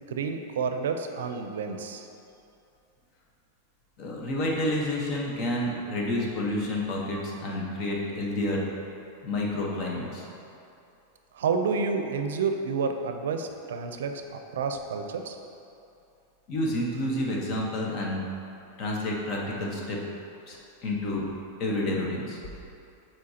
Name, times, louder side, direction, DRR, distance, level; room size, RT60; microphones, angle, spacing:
voice 1, 0.1-2.1 11.3-15.4, right 5 dB, 90° right, 6 dB, 0.5 m, -29 dB
voice 2, 4.0-8.6 9.2-10.3 16.5-18.2 18.8-20.0 20.5-21.3 21.6-22.4, left 1 dB, 40° left, -2 dB, 1.0 m, -29 dB
7.6 x 4.5 x 2.8 m, 2.7 s
supercardioid pair, 140°, 0 cm